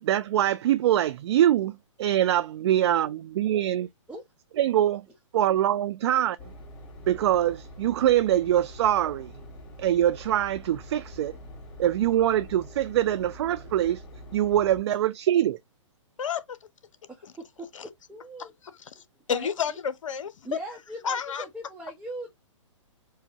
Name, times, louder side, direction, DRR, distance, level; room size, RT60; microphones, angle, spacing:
voice 1, 0.0-3.9 4.6-5.1 5.3-6.4 7.1-9.3 9.8-11.3 11.8-14.0 14.3-15.6, right 11 dB, 55° right, 0.4 m, -24 dB
sound 1, 6.4-14.8, equal, 45° left, 2.2 m, -45 dB
voice 2, 16.2-16.6 17.2-17.3 17.7-17.8 18.8-19.0 19.3-20.6 21.0-21.5, left 7 dB, 75° left, 0.7 m, -30 dB
voice 3, 17.1-17.7 18.1-18.5 19.3-19.5 20.4-22.3, right 2 dB, 5° right, 0.8 m, -39 dB
4.6 x 2.1 x 2.7 m
hypercardioid pair, 130°, 17 cm